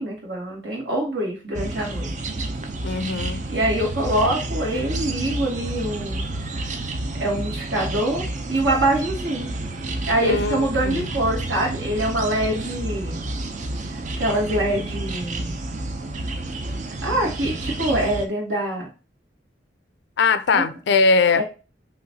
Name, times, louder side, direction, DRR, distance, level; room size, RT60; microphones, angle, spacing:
voice 1, 0.0-2.2 3.5-6.3 7.2-8.2 8.5-9.5 10.1-13.2 14.2-15.6 17.0-18.9 20.5-20.6 21.3-21.4, right 1 dB, 70° right, 2.3 m, -24 dB
sound 1, 1.5-18.3, right 2 dB, 45° right, 0.5 m, -30 dB
voice 2, 2.8-3.4 10.2-10.6 10.8-11.1 20.2-21.4, left 4 dB, 70° left, 0.4 m, -20 dB
5.7 x 3.1 x 2.7 m
head